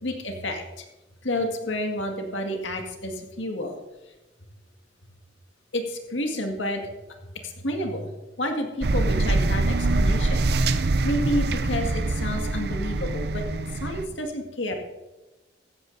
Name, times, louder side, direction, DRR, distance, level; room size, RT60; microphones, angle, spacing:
voice 1, 0.0-0.8 1.2-3.8 5.7-6.9 7.4-8.1 8.4-10.5 11.0-13.4 13.7-14.7, left 1 dB, 85° left, 3 dB, 2.0 m, -30 dB
sound 1, 8.8-14.1, right 2 dB, 55° right, 0.5 m, -24 dB
15.5 x 13.5 x 2.7 m, 1.1 s
head